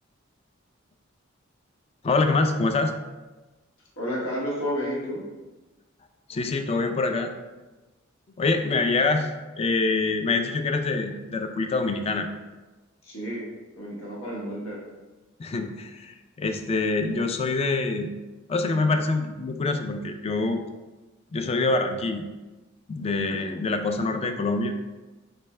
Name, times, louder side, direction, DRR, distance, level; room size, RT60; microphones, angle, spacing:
voice 1, 2.0-2.9 6.3-7.3 8.4-9.3 9.6-12.3 15.4-18.1 18.5-20.6 21.3-22.2 22.9-24.7, left 3 dB, 30° left, 6 dB, 0.3 m, -25 dB
voice 2, 4.0-5.3 13.0-14.8 23.0-23.7, equal, 90° left, -4 dB, 1.2 m, -32 dB
4.2 x 3.3 x 3.2 m, 1.2 s
head